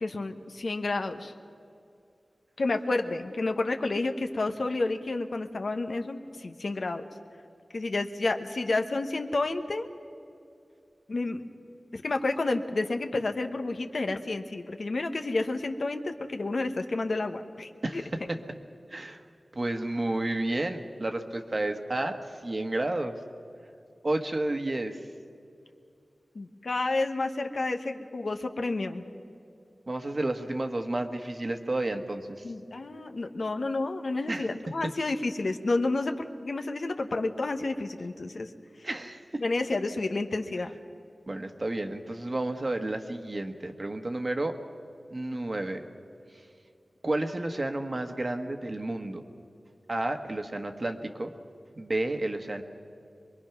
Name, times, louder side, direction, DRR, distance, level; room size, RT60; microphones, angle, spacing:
voice 1, 0.0-1.3 2.6-7.0 7.7-9.9 11.1-11.4 11.9-18.0 26.3-29.0 32.4-38.5 38.8-38.9 39.4-40.7, left 2 dB, 65° left, 6 dB, 1.1 m, -30 dB
voice 2, 18.9-19.2 19.5-23.2 24.0-25.0 29.9-32.4 34.3-34.5 38.8-39.4 41.3-44.6 45.1-45.8 47.0-49.2 49.9-51.3 51.7-52.6, right 2 dB, 40° right, 5 dB, 1.3 m, -31 dB
23.5 x 22.5 x 5.9 m, 2.5 s
wide cardioid pair, 80°, 0 cm